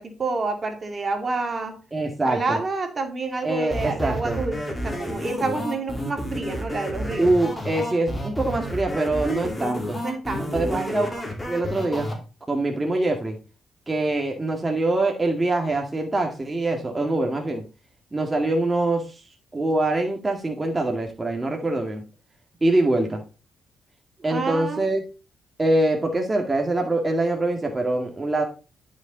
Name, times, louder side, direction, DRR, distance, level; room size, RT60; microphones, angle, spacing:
voice 1, 0.0-1.7 2.2-7.3 10.0-10.9 24.3-24.9, right 3 dB, 40° right, 5 dB, 2.3 m, -28 dB
voice 2, 1.9-2.6 3.4-4.4 7.2-10.0 10.5-11.1 11.5-12.1 12.5-13.4 13.9-17.6 18.1-19.2 19.5-22.0 22.6-23.2 24.2-25.0 25.6-28.4, right 2 dB, 20° right, 2 dB, 2.0 m, -24 dB
sound 1, 3.7-12.1, equal, 20° left, 3.7 m, -30 dB
10.5 x 6.5 x 3.9 m, 0.32 s
cardioid pair, 70°, 0 cm